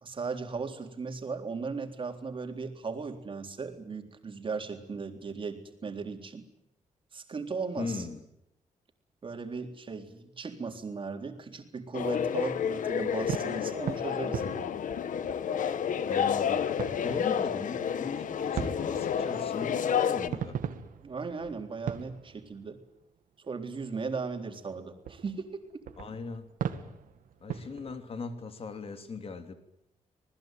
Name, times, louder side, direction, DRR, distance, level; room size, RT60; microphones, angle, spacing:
voice 1, 0.0-6.4 7.1-8.1 9.2-14.7 21.0-22.8 23.5-25.5 25.7-25.8, right 4 dB, 40° right, 5 dB, 3.8 m, -37 dB
voice 2, 7.8-8.2 16.0-16.7 17.0-20.6 26.0-26.5 27.4-29.5, left 4 dB, 45° left, 8 dB, 3.1 m, -38 dB
sound 1, 11.9-20.3, left 8 dB, 70° left, 1.4 m, -30 dB
sound 2, 13.1-15.9 16.2-16.3 16.8-18.0 18.5-23.0 23.4-23.5 24.1-24.2 24.7-24.8 25.0-27.9, right 8 dB, 90° right, 2.2 m, -39 dB
26.5 x 20.0 x 9.2 m, 0.83 s
wide cardioid pair, 130°, 14 cm